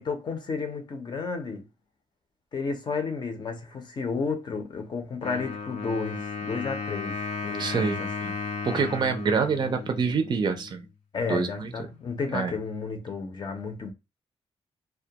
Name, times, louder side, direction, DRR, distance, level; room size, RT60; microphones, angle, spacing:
voice 1, 0.0-1.7 2.5-8.3 11.1-13.9, left 4 dB, 40° left, 0.6 m, -32 dB
Wind instrument woodwind instrument, 5.2-10.9, left 4 dB, 85° left, 0.6 m, -35 dB
voice 2, 7.6-8.0 8.6-10.8 11.3-11.7 12.3-12.5, right 5 dB, 40° right, 0.4 m, -26 dB
2.2 x 2.2 x 2.7 m
wide cardioid pair, 170°, 11 cm